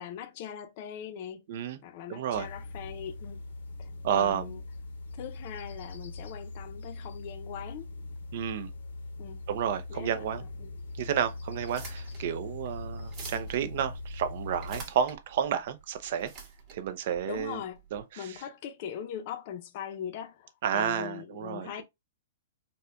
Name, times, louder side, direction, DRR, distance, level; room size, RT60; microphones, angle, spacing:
voice 1, 0.0-1.4 1.8-3.4 3.8-3.9 4.1-4.6 5.2-7.9 9.2-9.4 9.9-10.7 17.2-17.8 18.2-21.8, left 9 dB, 40° left, 0.6 m, -41 dB
voice 2, 1.5-1.8 2.1-2.5 4.0-4.6 8.3-8.7 9.5-10.4 11.0-16.3 16.7-17.6 17.9-18.4 20.6-21.8, right 8 dB, 50° right, 0.5 m, -31 dB
sound 1, 2.3-14.8, left 2 dB, 85° left, 0.9 m, -41 dB
sound 2, 11.5-18.0, right 5 dB, 30° right, 1.3 m, -47 dB
4.1 x 2.2 x 2.5 m
hypercardioid pair, 150°, 0 cm